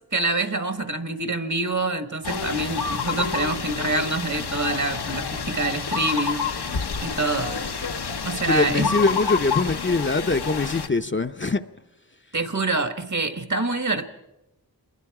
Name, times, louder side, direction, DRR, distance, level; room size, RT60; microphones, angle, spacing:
voice 1, 0.1-7.6 8.2-8.9 12.3-14.0, right 2 dB, 50° right, 1.4 m, -26 dB
sound 1, 2.2-10.9, left 5 dB, 90° left, 0.9 m, -29 dB
voice 2, 8.4-11.6, left 3 dB, 30° left, 0.6 m, -23 dB
26.5 x 21.0 x 4.8 m
wide cardioid pair, 60°, 38 cm